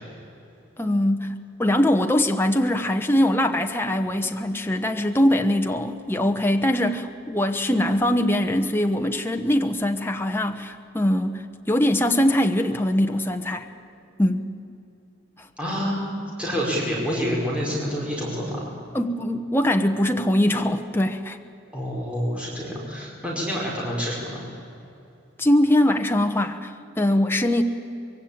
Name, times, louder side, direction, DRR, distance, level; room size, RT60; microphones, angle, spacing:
voice 1, 0.8-1.3 1.6-13.7 14.2-14.5 15.4-15.5 18.9-21.4 25.4-27.6, left 1 dB, 10° left, 4 dB, 1.0 m, -22 dB
voice 2, 15.6-18.6 21.7-24.4, equal, 5° right, -5 dB, 4.9 m, -28 dB
24.0 x 22.5 x 8.7 m, 2.7 s
head